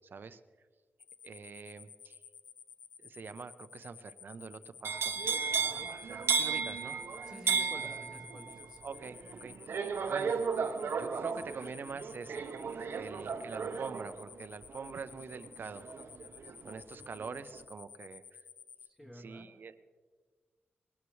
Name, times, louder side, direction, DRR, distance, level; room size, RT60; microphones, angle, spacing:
voice 1, 0.1-0.4 1.2-2.2 3.0-5.2 6.1-7.0 8.8-9.5 10.1-10.3 10.9-12.5 12.9-15.8 16.6-18.4 19.1-19.7, right 5 dB, 55° right, 11 dB, 0.8 m, -44 dB
sound 1, 1.0-18.9, left 7 dB, 85° left, 0.8 m, -53 dB
sound 2, 4.8-16.8 17.1-17.6, right 5 dB, 75° right, 1.0 m, -35 dB
voice 2, 7.3-8.8 13.1-13.3 19.0-19.5, equal, 10° left, -1 dB, 1.4 m, -50 dB
21.5 x 19.0 x 3.2 m, 1.5 s
wide cardioid pair, 150°, 4 cm